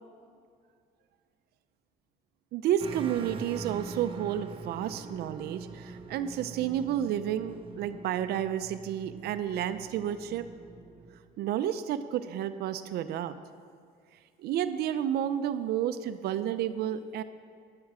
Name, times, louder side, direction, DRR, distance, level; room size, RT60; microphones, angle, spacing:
voice 1, 2.5-10.5 11.4-13.3 14.4-17.2, right 10 dB, 70° right, 11 dB, 0.5 m, -31 dB
sound 1, 2.8-11.2, right 4 dB, 30° right, 0.9 m, -44 dB
10.5 x 9.7 x 4.8 m, 2.2 s
cardioid pair, 110°, 17 cm